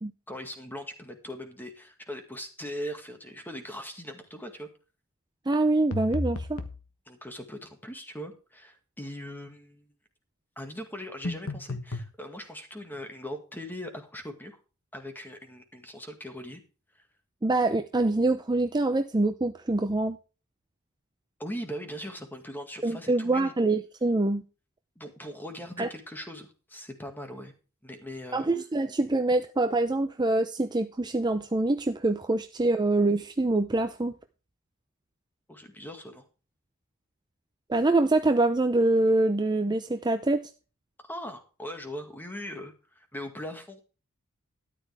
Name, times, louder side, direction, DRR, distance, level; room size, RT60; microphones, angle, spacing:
voice 1, 0.3-4.7 7.1-9.9 10.6-14.6 14.9-16.6 21.4-23.5 25.0-27.5 27.8-28.5 35.5-36.3 41.0-43.8, equal, 10° left, 5 dB, 2.0 m, -40 dB
voice 2, 5.5-6.6 17.4-20.2 22.8-24.4 25.8-25.9 28.3-34.1 37.7-40.4, right 2 dB, 20° right, 7 dB, 0.6 m, -25 dB
sound 1, 5.9-6.8 11.2-12.1, left 1 dB, 65° left, 1.3 m, -33 dB
13.0 x 10.5 x 3.5 m, 0.34 s
head